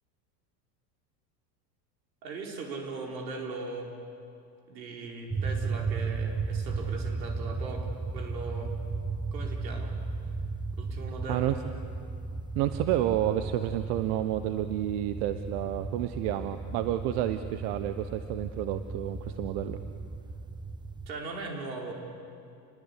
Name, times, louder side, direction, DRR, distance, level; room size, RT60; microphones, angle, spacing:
voice 1, 2.2-3.9 4.7-8.8 9.3-9.9 10.7-11.6 21.1-21.9, right 3 dB, 85° right, 0 dB, 4.7 m, -39 dB
sound 1, 5.3-21.1, right 4 dB, 10° right, 0.9 m, -35 dB
voice 2, 12.6-19.8, right 12 dB, 65° right, 10 dB, 1.2 m, -30 dB
29.0 x 20.5 x 8.5 m, 2.5 s
hypercardioid pair, 90°, 50 cm